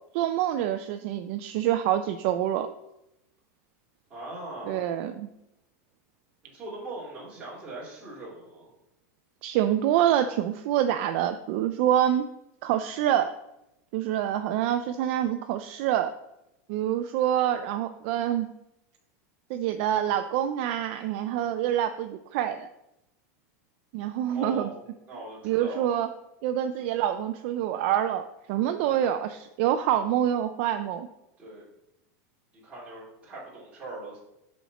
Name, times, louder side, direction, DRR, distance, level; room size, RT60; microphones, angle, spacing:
voice 1, 0.1-2.7 4.7-5.3 9.4-12.3 12.6-13.3 13.9-16.1 16.7-18.5 19.5-22.7 23.9-24.7 25.4-26.1 26.4-31.1, right 11 dB, 45° right, 8 dB, 0.3 m, -26 dB
voice 2, 4.1-5.1 6.5-8.7 24.3-24.8 25.1-26.0 26.9-27.0 28.8-29.1 31.4-31.7 32.6-34.2, right 2 dB, 15° right, -7 dB, 2.8 m, -40 dB
7.1 x 4.2 x 5.8 m, 0.88 s
supercardioid pair, 170°, 9 cm